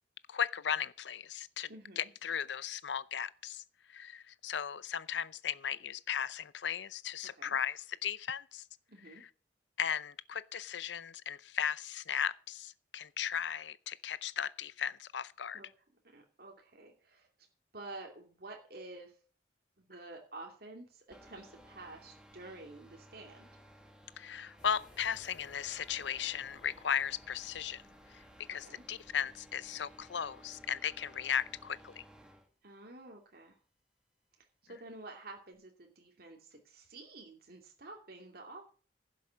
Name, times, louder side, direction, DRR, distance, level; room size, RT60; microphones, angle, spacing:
voice 1, 0.3-1.7 2.0-3.6 3.9-8.6 9.1-9.3 9.8-15.6 24.2-27.8 28.1-28.2 28.5-32.0, left 8 dB, 75° left, 0.6 m, -36 dB
voice 2, 1.7-2.1 7.4-7.6 8.9-9.2 15.5-15.7 16.1-17.3 17.7-19.1 19.8-23.5 28.6-28.8 32.6-33.5 34.6-38.7, right 2 dB, 55° right, 2.6 m, -50 dB
sound 1, 21.1-32.5, equal, 5° right, 1.6 m, -58 dB
sound 2, 24.6-30.1, left 1 dB, 20° left, 4.3 m, -62 dB
11.5 x 7.4 x 7.4 m
head